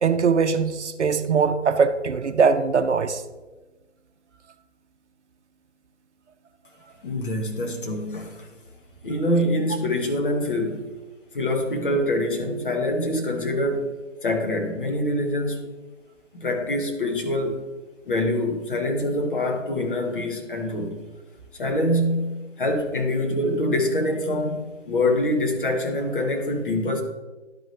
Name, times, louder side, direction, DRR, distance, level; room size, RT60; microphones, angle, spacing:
voice 1, 0.0-3.2, right 5 dB, 65° right, 8 dB, 0.7 m, -21 dB
voice 2, 7.0-8.5 9.0-10.9 11.3-13.9 14.2-15.6 16.3-17.6 18.1-21.0 21.5-27.0, left 1 dB, 45° left, 2 dB, 1.3 m, -25 dB
11.5 x 5.0 x 3.0 m, 1.2 s
figure-of-eight pair, 145°, 38 cm